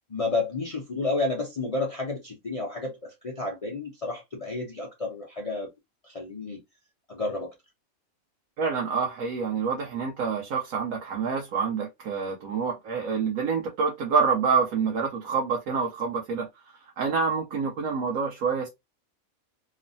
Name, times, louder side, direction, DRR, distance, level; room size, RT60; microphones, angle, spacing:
voice 1, 0.1-5.7 6.0-6.6 7.1-7.5, left 3 dB, 55° left, 0.4 m, -31 dB
voice 2, 8.6-16.5 17.0-18.7, right 5 dB, 80° right, 1.1 m, -27 dB
3.1 x 2.0 x 2.5 m
omnidirectional pair, 1.5 m